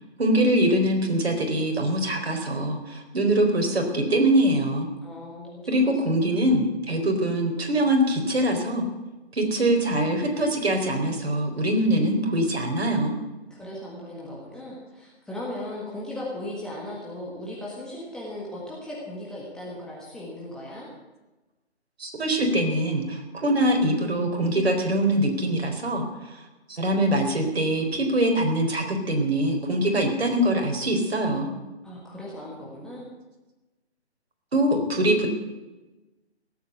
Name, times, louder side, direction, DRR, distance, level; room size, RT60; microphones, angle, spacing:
voice 1, 0.2-4.9 5.7-8.8 9.3-13.2 22.0-26.4 26.7-31.5 34.5-35.3, right 1 dB, 60° right, 3 dB, 4.1 m, -23 dB
voice 2, 5.0-6.2 13.5-20.9 31.8-33.0, left 1 dB, ahead, -6 dB, 1.6 m, -37 dB
17.5 x 8.6 x 8.2 m, 1.1 s
figure-of-eight pair, 155°, 34 cm